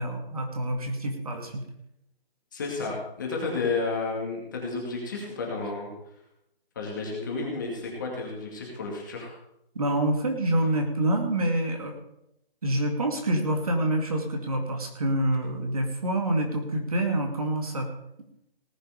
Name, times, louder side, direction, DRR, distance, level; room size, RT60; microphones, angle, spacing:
voice 1, 0.0-1.6 9.7-12.0 12.6-17.9, right 1 dB, 40° right, 3 dB, 2.3 m, -27 dB
voice 2, 2.5-5.9 6.8-9.3, left 3 dB, 20° left, -1 dB, 2.3 m, -31 dB
18.0 x 8.1 x 5.2 m, 0.80 s
hypercardioid pair, 175°, 30 cm